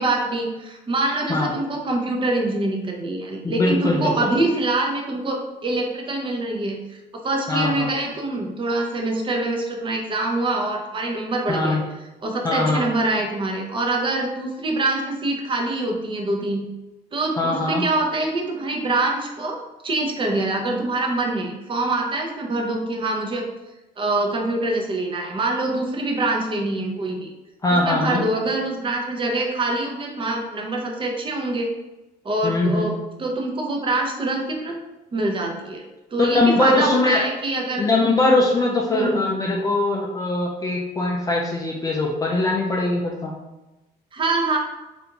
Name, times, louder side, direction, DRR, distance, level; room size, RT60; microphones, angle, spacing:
voice 1, 0.0-11.8 12.2-16.7 17.1-23.5 24.0-27.3 27.7-31.7 32.2-34.8 35.1-37.9 38.9-39.3 44.1-44.6, right 2 dB, 30° right, 1 dB, 0.6 m, -25 dB
voice 2, 3.4-4.3 7.5-7.9 11.5-11.8 12.4-12.8 17.4-17.9 27.6-28.2 32.4-32.9 36.2-37.2 37.8-43.3, left 2 dB, 20° left, -2 dB, 0.4 m, -21 dB
3.4 x 2.5 x 2.8 m, 1.0 s
cardioid pair, 110°, 17 cm